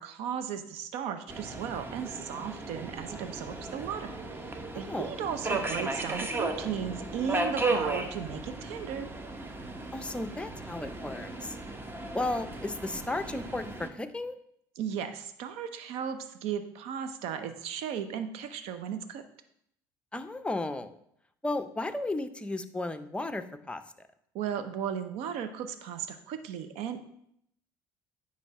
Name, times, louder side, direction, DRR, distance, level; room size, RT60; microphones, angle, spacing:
voice 1, 0.0-4.2 4.7-9.1 14.8-19.2 24.3-27.1, right 8 dB, 70° right, 10 dB, 0.7 m, -36 dB
Subway metro underground, 1.3-13.9, right 2 dB, 20° right, 0.9 m, -35 dB
voice 2, 4.7-5.1 9.9-11.6 12.1-14.4 20.1-21.0 21.4-23.8, left 2 dB, 10° left, 9 dB, 0.6 m, -34 dB
9.3 x 3.1 x 4.7 m, 0.72 s
hypercardioid pair, 70°, 11 cm